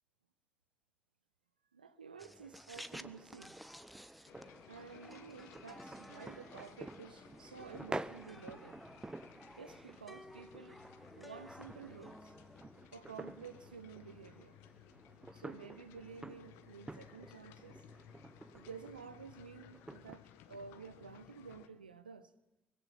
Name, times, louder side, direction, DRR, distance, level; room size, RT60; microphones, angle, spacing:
voice 1, 1.7-3.8 4.7-8.8 9.6-10.8 11.2-12.4 12.9-14.6 15.3-17.8 18.5-22.3, right 5 dB, 85° right, 0.8 m, -52 dB
sound 1, 2.2-12.6, equal, ahead, 1.3 m, -55 dB
sound 2, 2.7-20.1, right 2 dB, 15° right, 1.0 m, -50 dB
sound 3, 4.3-21.7, left 10 dB, 70° left, 1.4 m, -59 dB
24.0 x 20.0 x 7.3 m
figure-of-eight pair, 45°, 5 cm